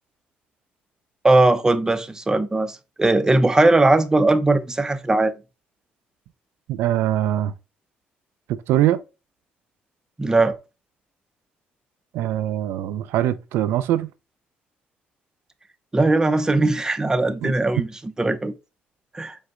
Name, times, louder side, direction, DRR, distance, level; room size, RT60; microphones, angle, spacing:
voice 1, 1.2-5.3 10.2-10.6 15.9-18.5 19.1-19.4, right 2 dB, 15° right, 0.6 m, -19 dB
voice 2, 6.7-7.5 8.5-9.0 12.1-14.1 17.4-17.5, right 12 dB, 85° right, 0.3 m, -22 dB
5.1 x 2.1 x 3.6 m
cardioid pair, 80°, 4 cm